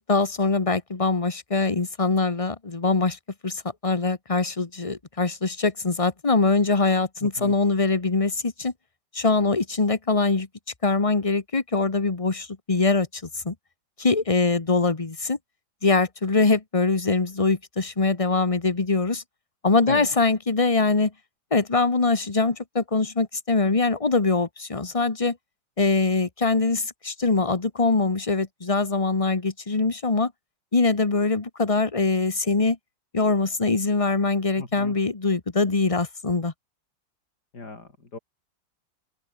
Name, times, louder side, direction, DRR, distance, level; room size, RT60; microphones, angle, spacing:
voice 1, 0.0-3.2 3.4-8.7 9.1-10.5 10.8-13.1 13.4-13.5 14.0-15.4 15.8-19.2 19.6-21.1 21.5-25.3 25.8-30.3 30.7-32.8 33.1-36.5, left 3 dB, 20° left, 1.2 m, -23 dB
voice 2, 7.2-7.6 19.9-20.1 34.6-35.0 37.5-38.2, left 3 dB, 60° left, 4.9 m, -36 dB
open air
omnidirectional pair, 2.1 m